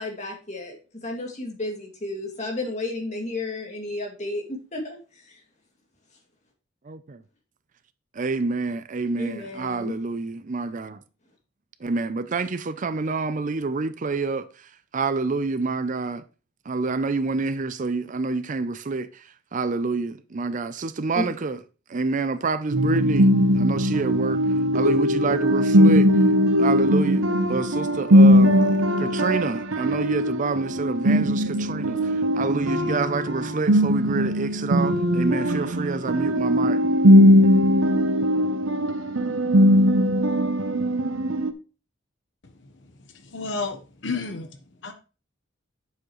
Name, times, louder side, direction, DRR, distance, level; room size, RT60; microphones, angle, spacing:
voice 1, 0.0-5.0 5.3-5.4 9.2-9.9 21.1-21.3, left 2 dB, 35° left, 2.4 m, -32 dB
voice 2, 6.9-7.2 8.1-11.0 11.8-14.5 14.9-16.2 16.7-19.2 19.5-21.6 21.9-23.3 23.5-24.4 24.7-26.1 26.6-36.8, right 4 dB, 40° right, 0.5 m, -27 dB
sound 1, 22.7-41.5, equal, 90° right, 0.8 m, -19 dB
voice 3, 42.4-44.9, left 4 dB, 65° left, 1.0 m, -33 dB
8.8 x 7.1 x 3.1 m
head